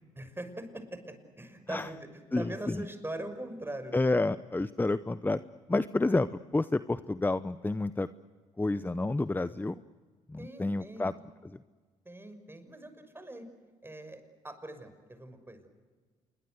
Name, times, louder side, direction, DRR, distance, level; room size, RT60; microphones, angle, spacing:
voice 1, 0.2-2.1 2.4-4.1 10.4-11.1 12.0-13.5 13.8-15.7, right 1 dB, 15° right, 8 dB, 6.0 m, -42 dB
voice 2, 2.3-2.8 3.9-5.4 5.7-8.1 8.6-9.8 10.3-11.1, left 2 dB, 15° left, 14 dB, 0.7 m, -29 dB
27.0 x 23.0 x 8.1 m, 1.4 s
hypercardioid pair, 55°, 15 cm